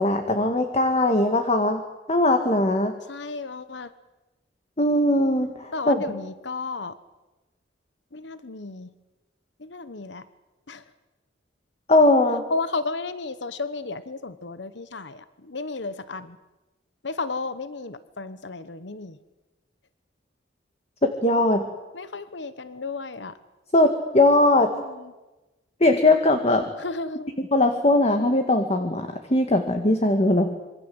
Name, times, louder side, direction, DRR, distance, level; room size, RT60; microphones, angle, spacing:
voice 1, 0.0-1.8 2.1-2.9 4.8-6.0 11.9-12.4 21.0-21.7 23.7-24.7 25.8-26.7 27.4-30.5, left 2 dB, 35° left, 6 dB, 1.9 m, -20 dB
voice 2, 3.1-3.9 5.7-6.9 8.1-8.9 9.6-10.2 10.7-10.8 12.5-16.4 17.0-19.2 21.9-23.3 24.6-25.1 26.8-27.3, left 3 dB, 70° left, 13 dB, 1.1 m, -33 dB
26.5 x 23.5 x 7.9 m, 1.1 s
head